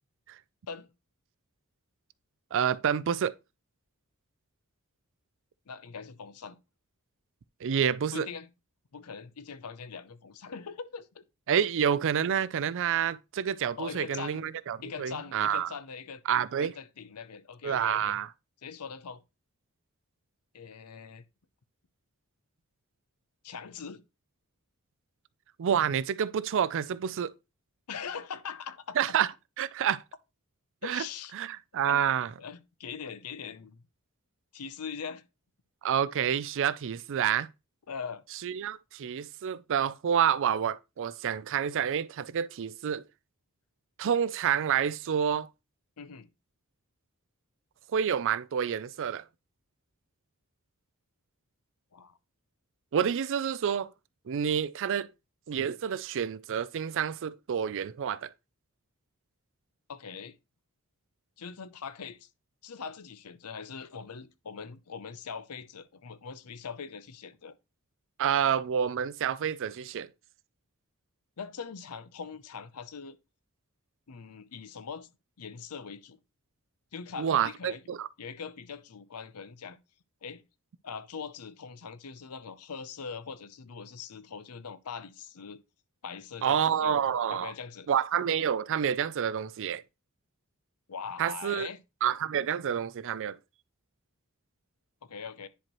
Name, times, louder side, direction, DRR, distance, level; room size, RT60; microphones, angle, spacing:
voice 1, 2.5-3.3 7.6-8.3 11.5-15.7 16.3-16.7 17.6-18.3 25.6-27.3 29.0-29.3 29.6-30.0 30.8-31.0 31.3-32.3 35.8-37.5 38.4-43.0 44.0-45.5 47.9-49.2 52.9-53.9 54.3-55.1 55.5-58.3 68.2-70.1 77.2-78.1 86.4-87.5 87.9-89.8 91.2-91.7 92.0-93.4, right 8 dB, 60° right, 0.4 m, -28 dB
voice 2, 5.7-6.6 8.1-8.5 8.9-11.2 13.8-14.4 14.8-16.2 16.6-18.2 18.6-19.2 20.5-21.2 23.4-24.0 27.9-29.2 30.8-31.3 31.9-32.1 32.4-33.8 34.5-35.2 37.9-38.2 46.0-46.3 51.9-52.2 59.9-60.3 61.4-62.3 62.6-67.5 71.4-73.2 74.1-75.1 75.4-76.2 76.9-77.8 78.2-79.8 80.2-80.4 80.8-85.6 86.0-87.0 87.3-87.9 90.9-91.8 95.0-95.5, left 6 dB, 85° left, 0.7 m, -41 dB
10.0 x 4.5 x 3.0 m
head